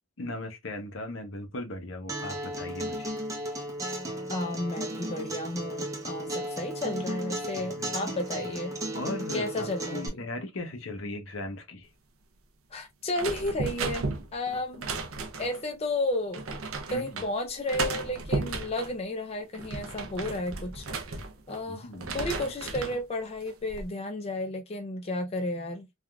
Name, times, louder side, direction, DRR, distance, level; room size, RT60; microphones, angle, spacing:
voice 1, 0.2-3.1 7.6-7.9 8.9-11.9 16.9-17.2 21.7-22.3, left 2 dB, 70° left, 0.8 m, -38 dB
Acoustic guitar, 2.1-10.1, right 1 dB, 15° right, 0.7 m, -35 dB
voice 2, 4.3-8.8 9.3-10.3 12.7-14.1 14.3-14.9 15.4-16.4 16.9-21.0 21.5-21.9 22.1-25.9, left 1 dB, 30° left, 0.4 m, -32 dB
sound 1, 13.1-15.6 16.3-17.3 17.7-18.9 19.4-21.6 21.9-23.0 23.5-23.9, right 3 dB, 85° right, 0.6 m, -34 dB
3.4 x 2.4 x 2.2 m
head